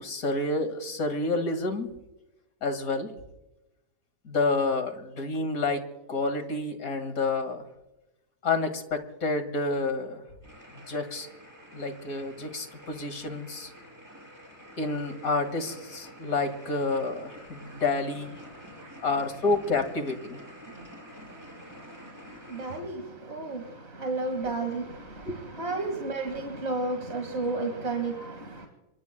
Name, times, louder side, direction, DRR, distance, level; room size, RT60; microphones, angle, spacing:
voice 1, 0.0-1.9 2.6-3.1 4.2-7.6 8.4-10.2 10.9-11.3 11.7-13.7 14.8-18.4 19.0-20.4 25.2-25.4, left 3 dB, 65° left, 2.5 m, -29 dB
sound 1, 10.4-22.8, equal, 10° right, 5.9 m, -48 dB
voice 2, 18.5-18.9 20.7-28.7, right 3 dB, 45° right, 2.3 m, -34 dB
27.5 x 23.5 x 2.2 m
omnidirectional pair, 1.6 m